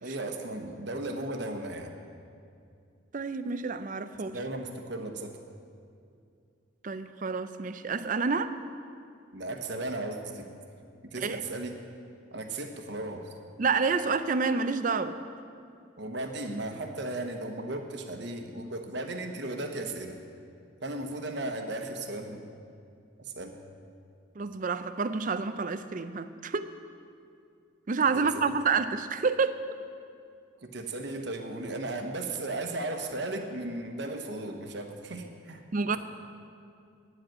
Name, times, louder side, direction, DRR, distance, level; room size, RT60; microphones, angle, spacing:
voice 1, 0.0-2.0 4.3-5.3 9.3-10.5 11.1-11.8 12.3-13.3 16.0-20.2 20.8-22.5 23.2-23.6 28.1-28.4 30.6-35.6, right 2 dB, 60° right, 4 dB, 1.1 m, -36 dB
voice 2, 3.1-4.4 6.8-8.5 11.2-11.4 13.6-15.2 24.4-26.7 27.9-29.6 35.7-36.0, right 4 dB, 40° right, 11 dB, 0.5 m, -28 dB
10.0 x 7.8 x 8.9 m, 2.4 s
head